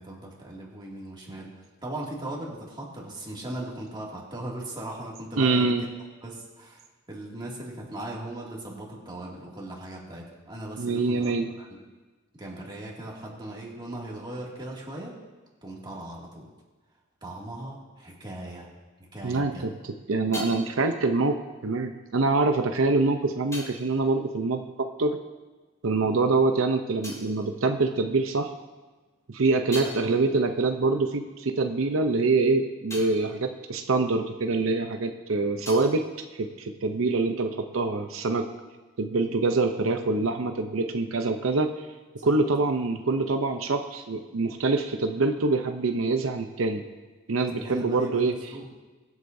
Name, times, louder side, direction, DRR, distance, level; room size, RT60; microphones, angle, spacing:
voice 1, 0.0-5.9 6.2-11.8 12.4-15.2 15.6-16.5 17.2-18.7 19.0-19.7 29.8-29.9 42.2-42.3 47.5-48.7, right 1 dB, 20° right, -4 dB, 2.4 m, -39 dB
voice 2, 5.4-5.8 10.8-11.5 19.2-19.7 20.1-25.2 25.8-28.5 29.3-36.1 36.4-38.5 39.0-41.7 42.2-46.8 47.3-48.3, right 3 dB, 85° right, 6 dB, 0.7 m, -25 dB
sound 1, 19.6-25.5 25.8-28.5 28.9-34.9 35.1-37.2, left 1 dB, 15° left, 4.4 m, -46 dB
23.0 x 8.0 x 2.7 m, 1.3 s
head